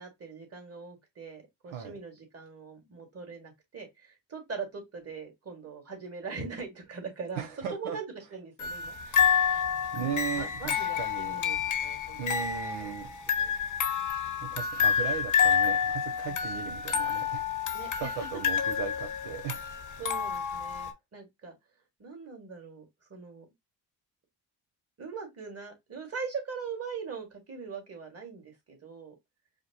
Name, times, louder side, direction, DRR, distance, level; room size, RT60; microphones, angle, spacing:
voice 1, 0.0-9.7 9.9-13.1 13.4-13.5 16.3-16.4 17.7-18.3 20.0-21.6 22.0-23.5 25.0-29.1, right 5 dB, 30° right, 2.0 m, -42 dB
voice 2, 7.4-8.0 9.2-9.3 9.9-11.4 12.2-13.1 14.4-17.4 18.0-19.6, right 8 dB, 75° right, 0.8 m, -37 dB
sound 1, 8.6-20.9, left 7 dB, 40° left, 0.8 m, -29 dB
5.0 x 2.2 x 2.8 m
supercardioid pair, 65°, 47 cm